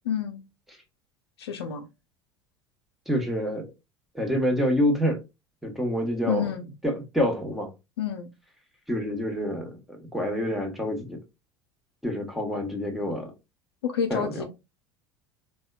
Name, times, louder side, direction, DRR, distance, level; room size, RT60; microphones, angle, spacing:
voice 1, 0.1-0.5 1.4-1.9 6.3-6.6 8.0-8.3 13.8-14.5, left 8 dB, 70° left, 0.5 m, -29 dB
voice 2, 3.1-3.7 4.1-5.2 5.6-6.4 6.8-7.7 8.9-11.2 12.0-13.3 14.1-14.4, equal, ahead, 1.2 m, -27 dB
4.1 x 2.3 x 2.2 m
figure-of-eight pair, 70°, 14 cm